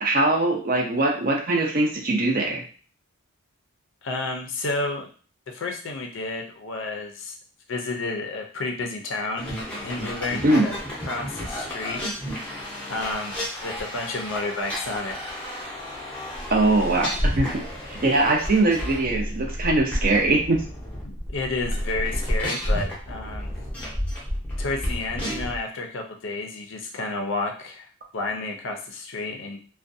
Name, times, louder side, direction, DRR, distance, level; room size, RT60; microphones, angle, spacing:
voice 1, 0.0-2.6 10.4-10.7 16.5-17.5 17.9-20.6, right 2 dB, 40° right, 1 dB, 0.5 m, -21 dB
voice 2, 4.0-5.1 5.5-7.3 7.7-10.8 11.1-12.5 12.9-15.2 21.0-23.7 24.6-27.9 28.1-29.6, left 3 dB, 55° left, 3 dB, 0.4 m, -31 dB
sound 1, 9.4-25.6, equal, 5° left, 0.7 m, -31 dB
2.4 x 2.2 x 2.6 m, 0.40 s
head